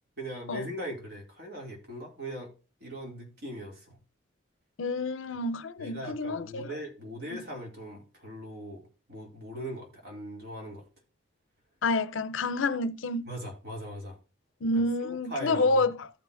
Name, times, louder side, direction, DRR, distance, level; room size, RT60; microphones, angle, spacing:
voice 1, 0.2-2.5 2.8-4.0 5.8-10.8 13.3-14.2 15.0-15.9, equal, 55° right, 2.6 m, -40 dB
voice 2, 4.8-6.8 7.3-7.4 11.8-13.3 14.6-16.1, left 2 dB, 85° left, 0.6 m, -28 dB
14.5 x 5.6 x 2.5 m
head